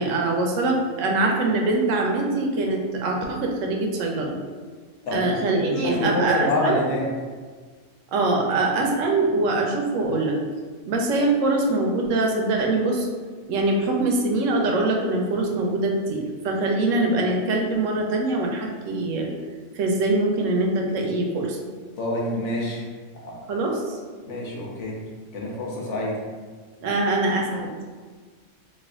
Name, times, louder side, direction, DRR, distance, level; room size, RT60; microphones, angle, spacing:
voice 1, 0.0-4.4 5.1-6.8 8.1-10.4 10.8-13.1 13.5-19.3 19.7-21.6 23.5-24.0 26.8-27.7, right 2 dB, 90° right, 1 dB, 1.0 m, -23 dB
voice 2, 5.1-7.1 22.0-22.8 23.1-23.4 24.3-25.0 25.3-26.2, left 1 dB, 70° left, -3 dB, 1.1 m, -26 dB
3.3 x 2.4 x 3.5 m, 1.5 s
omnidirectional pair, 1.3 m